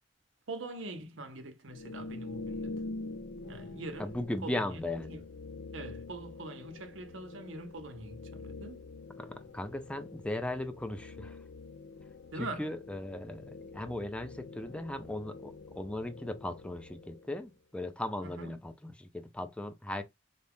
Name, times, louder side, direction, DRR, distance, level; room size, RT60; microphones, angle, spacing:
voice 1, 0.5-2.8 3.5-4.1 4.4-4.8 5.1-5.2 5.7-8.8 12.3-12.7 18.2-18.6, right 2 dB, 85° right, 0.9 m, -43 dB
sound 1, 1.7-17.5, left 3 dB, 65° left, 0.4 m, -45 dB
voice 2, 4.0-5.2 9.2-11.4 12.3-20.0, left 1 dB, 5° left, 0.5 m, -37 dB
4.0 x 2.4 x 3.5 m
head